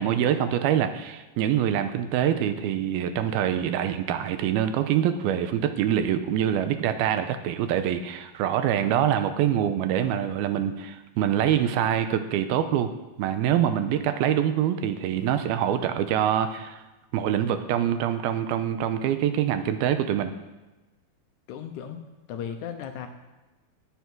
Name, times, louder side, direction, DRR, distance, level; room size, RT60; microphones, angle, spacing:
voice 1, 0.0-12.9 13.2-16.8 17.1-20.3, right 10 dB, 85° right, 9 dB, 2.7 m, -25 dB
voice 2, 21.5-22.0 22.3-23.1, left 8 dB, 75° left, 6 dB, 1.8 m, -35 dB
19.0 x 8.4 x 6.1 m, 1.1 s
omnidirectional pair, 4.4 m